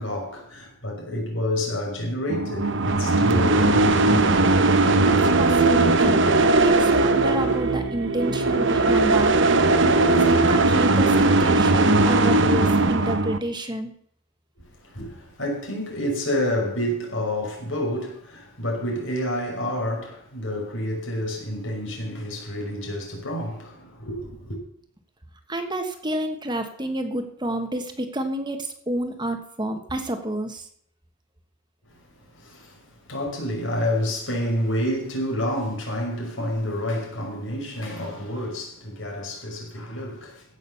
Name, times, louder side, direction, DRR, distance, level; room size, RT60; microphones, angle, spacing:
voice 1, 0.0-4.4 5.0-5.1 14.6-24.6 32.3-40.4, left 1 dB, 70° left, 5.6 m, -29 dB
sound 1, 2.3-13.4, right 3 dB, 65° right, 1.1 m, -19 dB
voice 2, 5.0-9.4 9.7-13.9 25.5-30.7, right 1 dB, 20° right, 1.5 m, -29 dB
16.0 x 6.5 x 7.0 m
head